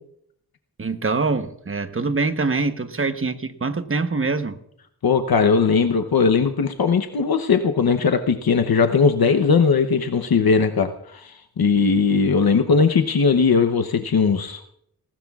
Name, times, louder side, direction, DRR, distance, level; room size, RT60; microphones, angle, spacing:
voice 1, 0.8-4.6, right 3 dB, 35° right, 9 dB, 1.0 m, -24 dB
voice 2, 5.0-14.7, left 5 dB, 70° left, 6 dB, 0.9 m, -19 dB
19.0 x 19.0 x 2.4 m, 0.71 s
wide cardioid pair, 90°, 38 cm